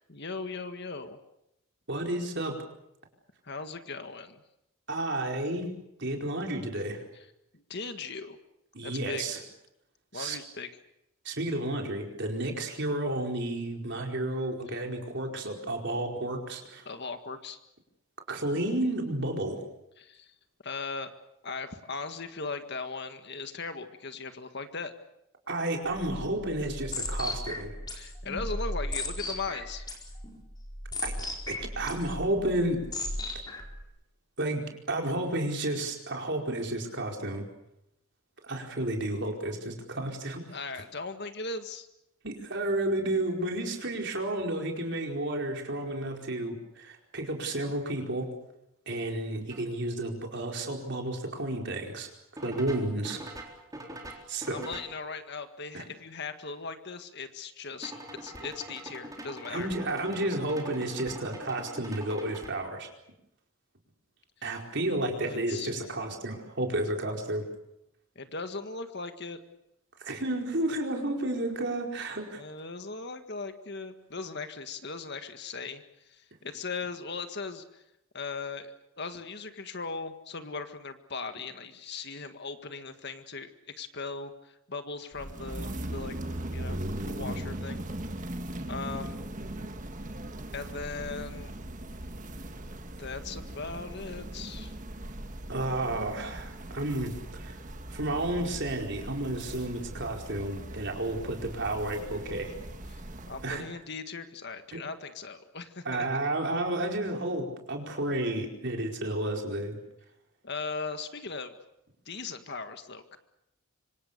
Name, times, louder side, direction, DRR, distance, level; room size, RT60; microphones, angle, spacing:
voice 1, 0.1-1.2 3.4-4.4 7.1-7.3 7.5-8.4 8.8-9.2 10.1-10.7 14.7-14.8 16.9-17.6 20.0-20.3 20.6-21.1 21.4-24.9 27.9-29.9 40.5-41.9 54.1-54.2 54.5-57.9 58.2-59.7 65.1-66.0 68.2-69.4 72.3-77.8 78.1-86.2 86.5-87.9 88.7-89.3 90.5-91.5 93.0-94.7 102.9-106.1 110.4-111.6 112.1-113.2, left 4 dB, 50° left, 8 dB, 1.8 m, -38 dB
voice 2, 1.9-2.6 4.9-5.7 6.0-7.0 8.7-9.4 10.1-10.4 11.2-16.9 18.3-19.6 25.5-27.7 31.0-31.1 31.5-32.8 34.4-37.4 38.4-40.6 42.2-48.3 48.9-52.1 52.4-53.2 54.3-54.7 55.7-55.8 59.5-62.9 64.4-67.5 70.0-72.4 95.5-97.6 97.9-102.5 103.4-103.6 104.7-104.8 105.8-109.8, right 1 dB, 55° right, 2 dB, 4.7 m, -31 dB
sound 1, 25.9-33.8, left 1 dB, 20° left, 4.6 m, -36 dB
sound 2, 49.5-49.6 52.4-55.0 57.8-62.5, right 1 dB, 15° right, 4.0 m, -43 dB
sound 3, 85.1-103.7, right 1 dB, 35° right, 1.6 m, -39 dB
26.0 x 25.5 x 6.8 m, 0.84 s
head